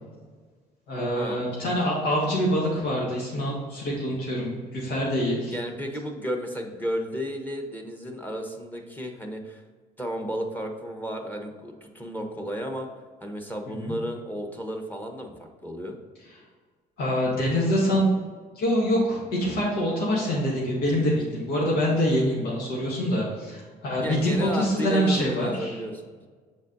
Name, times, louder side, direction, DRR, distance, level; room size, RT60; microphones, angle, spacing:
voice 1, 0.9-5.5 13.7-14.0 17.0-18.1 18.6-25.8, equal, 85° left, -5 dB, 1.8 m, -25 dB
voice 2, 5.5-9.6 10.0-12.9 13.2-16.0 24.0-26.0, equal, 10° left, 3 dB, 1.0 m, -33 dB
7.1 x 4.1 x 4.0 m, 1.5 s
cardioid pair, 110°, 17 cm